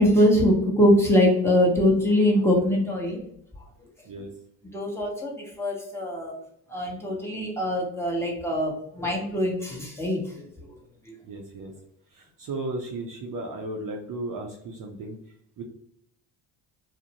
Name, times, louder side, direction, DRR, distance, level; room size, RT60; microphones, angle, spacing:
voice 1, 0.0-3.2 4.7-6.3 6.7-10.5 11.1-11.2, left 1 dB, 5° left, -3 dB, 0.8 m, -23 dB
voice 2, 11.2-11.7 12.1-15.2 15.6-15.7, right 2 dB, 40° right, 0 dB, 0.5 m, -35 dB
2.5 x 2.1 x 2.8 m, 0.72 s
supercardioid pair, 70°, 50 cm